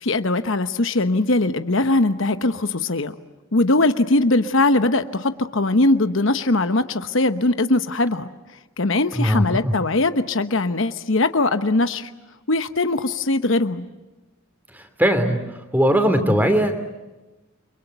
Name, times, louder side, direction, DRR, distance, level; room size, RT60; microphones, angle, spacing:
voice 1, 0.0-3.1 3.5-8.3 8.8-12.1 12.5-13.8, left 2 dB, 65° left, 10 dB, 1.0 m, -20 dB
voice 2, 9.2-9.7 14.7-15.4 15.7-16.7, equal, 10° right, 8 dB, 3.0 m, -19 dB
29.5 x 24.5 x 8.1 m, 1.1 s
head